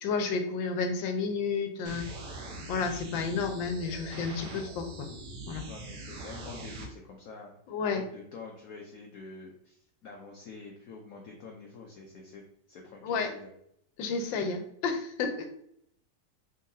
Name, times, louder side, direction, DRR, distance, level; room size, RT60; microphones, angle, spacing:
voice 1, 0.0-2.1 2.7-5.1 5.5-5.7 7.7-8.0 13.0-13.3 14.0-15.5, left 4 dB, 90° left, 6 dB, 1.4 m, -31 dB
sound 1, 1.9-6.9, right 2 dB, 70° right, 1.4 m, -42 dB
voice 2, 5.7-7.6 7.8-12.4 12.7-13.5, left 4 dB, 65° left, 0 dB, 0.9 m, -47 dB
3.9 x 3.8 x 2.7 m, 0.71 s
omnidirectional pair, 2.0 m